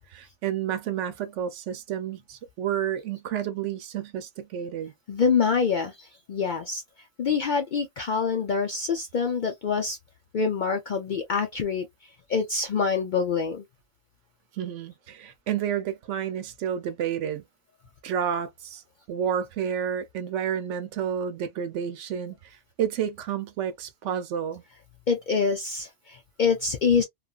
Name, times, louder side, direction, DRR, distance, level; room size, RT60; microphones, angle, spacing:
voice 1, 0.1-4.9 14.5-17.4 18.0-18.8 19.1-24.6, right 9 dB, 75° right, 1.0 m, -30 dB
voice 2, 5.1-6.8 7.2-10.0 10.3-13.6 25.1-27.0, left 5 dB, 60° left, 0.5 m, -26 dB
2.8 x 2.4 x 2.3 m
omnidirectional pair, 1.3 m